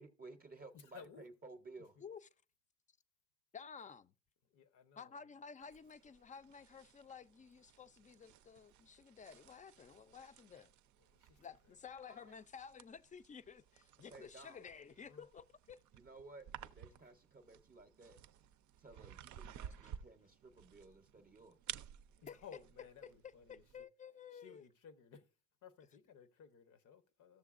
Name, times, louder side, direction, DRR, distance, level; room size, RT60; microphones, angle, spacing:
voice 1, 0.0-2.0 12.1-12.3 14.1-14.7 15.9-18.2 18.8-21.6, right 3 dB, 30° right, 0.7 m, -56 dB
voice 2, 0.9-1.2 4.5-5.1 11.1-11.4 14.0-14.1 15.1-15.2 16.9-17.0 22.2-23.6 24.3-25.2 25.6-27.4, left 7 dB, 80° left, 0.9 m, -58 dB
voice 3, 3.5-4.1 5.0-10.7 11.4-15.8 19.5-19.6 22.2-22.4 23.0-23.1 23.7-24.6, left 6 dB, 25° left, 0.4 m, -53 dB
sound 1, 5.6-23.8, right 10 dB, 70° right, 0.5 m, -55 dB
14.0 x 6.6 x 2.4 m
cardioid pair, 90°, 30 cm